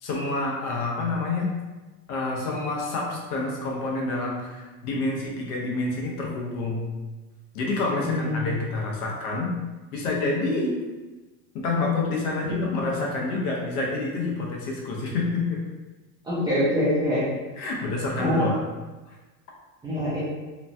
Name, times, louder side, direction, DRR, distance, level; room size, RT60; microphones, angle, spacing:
voice 1, 0.0-1.5 2.1-6.8 7.5-9.5 9.9-10.8 11.5-15.6 17.6-18.6, left 3 dB, 85° left, -2 dB, 0.9 m, -28 dB
voice 2, 8.0-8.5 12.5-12.6 16.3-17.3 18.2-18.5 19.8-20.2, left 1 dB, 10° right, -10 dB, 0.4 m, -24 dB
3.0 x 2.2 x 2.5 m, 1.2 s
supercardioid pair, 145°, 44 cm